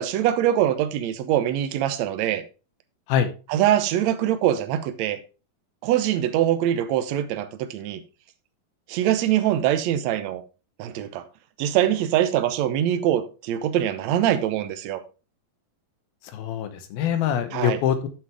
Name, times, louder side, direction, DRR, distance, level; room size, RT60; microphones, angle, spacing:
voice 1, 0.0-2.4 3.5-5.2 5.8-8.0 8.9-10.4 10.8-11.2 11.6-15.0 17.5-17.8, right 11 dB, 75° right, 1.6 m, -23 dB
voice 2, 16.3-18.1, left 9 dB, 85° left, 2.8 m, -24 dB
9.2 x 7.6 x 3.4 m
omnidirectional pair, 4.2 m